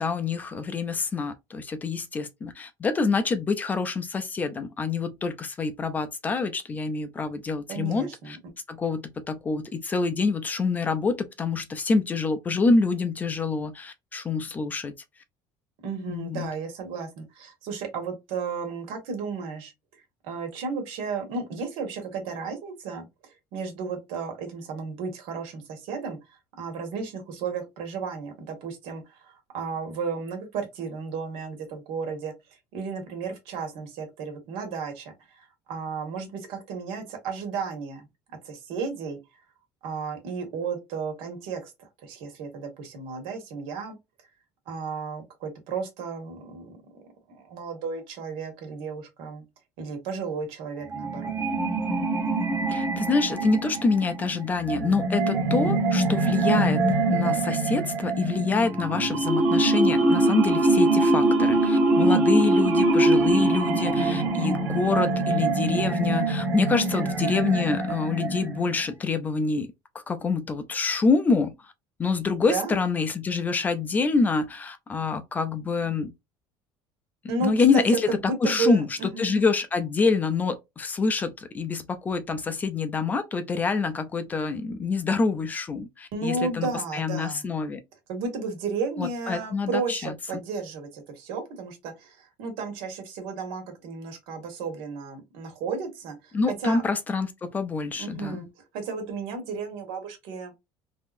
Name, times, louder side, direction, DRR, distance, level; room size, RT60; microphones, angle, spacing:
voice 1, 0.0-8.4 8.7-14.9 16.1-16.5 52.7-56.8 57.1-69.7 69.9-71.7 72.0-76.1 77.4-78.1 78.4-87.8 89.0-90.1 96.3-98.5, left 4 dB, 20° left, 0.4 m, -26 dB
voice 2, 7.7-8.4 15.8-19.7 20.2-23.1 23.5-26.2 26.6-32.3 32.7-38.0 38.4-39.2 39.8-43.9 44.7-47.0 47.3-49.4 49.8-51.3 66.7-67.2 72.4-72.8 77.3-79.4 86.1-87.5 88.1-96.8 98.0-98.5 98.7-100.5, right 5 dB, 80° right, 1.6 m, -33 dB
sound 1, 50.9-68.8, right 2 dB, 15° right, 1.1 m, -24 dB
3.6 x 2.8 x 2.5 m
cardioid pair, 175°, 9 cm